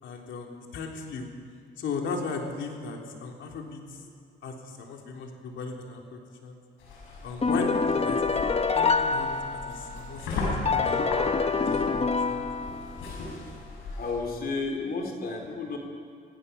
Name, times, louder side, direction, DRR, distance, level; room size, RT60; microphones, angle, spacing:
voice 1, 0.0-1.3 1.8-4.0 4.4-6.6 7.2-8.4 8.7-11.1 11.6-12.4, left 4 dB, 70° left, 1 dB, 3.5 m, -37 dB
sound 1, 6.8-14.1, left 2 dB, 90° left, 7.5 m, -37 dB
sound 2, 7.4-10.0 10.7-13.1, left 4 dB, 30° left, 1.2 m, -26 dB
voice 2, 13.9-15.8, left 3 dB, 50° left, 2 dB, 4.1 m, -32 dB
26.0 x 16.5 x 7.0 m, 2.2 s
cardioid pair, 90°, 20 cm